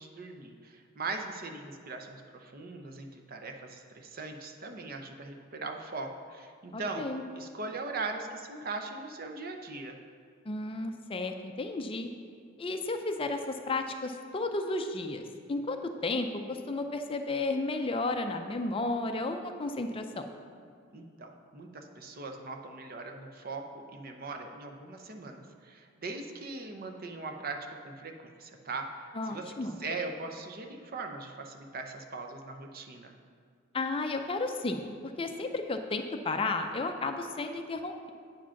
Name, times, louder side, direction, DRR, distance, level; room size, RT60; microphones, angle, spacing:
voice 1, 0.0-7.0 7.3-10.0 20.9-33.1, right 3 dB, 50° right, 4 dB, 0.7 m, -40 dB
voice 2, 6.7-7.2 10.5-12.1 12.6-15.8 16.0-20.3 29.2-29.8 33.7-34.9 35.2-38.1, left 2 dB, 30° left, 6 dB, 0.4 m, -33 dB
8.9 x 5.0 x 5.7 m, 2.1 s
head